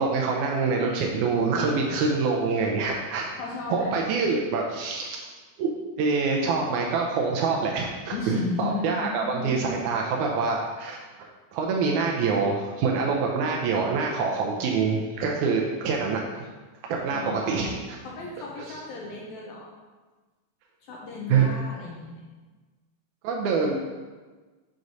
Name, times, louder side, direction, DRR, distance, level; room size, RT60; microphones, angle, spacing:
voice 1, 0.0-3.3 3.7-5.3 5.6-5.7 6.0-11.3 11.5-16.5 16.8-18.0 21.3-21.5 23.2-23.8, right 4 dB, 80° right, 0 dB, 1.8 m, -25 dB
voice 2, 3.4-4.0 8.1-9.7 17.1-19.7 20.8-22.3, left 3 dB, 75° left, -2 dB, 1.8 m, -35 dB
6.3 x 6.0 x 2.7 m, 1.3 s
omnidirectional pair, 3.7 m